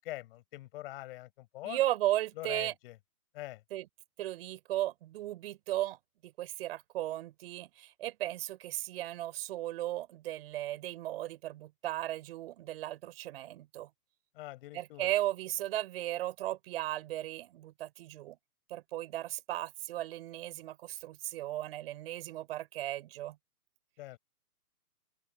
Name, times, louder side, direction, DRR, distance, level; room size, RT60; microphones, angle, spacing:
voice 1, 0.0-1.8 2.4-3.0 3.3-3.6 14.3-15.1 24.0-24.2, left 17 dB, 35° left, 7.2 m, -44 dB
voice 2, 1.6-2.7 3.7-3.9 4.2-13.9 14.7-18.4 18.7-23.4, right 14 dB, 40° right, 5.0 m, -36 dB
open air
hypercardioid pair, 140°, 47 cm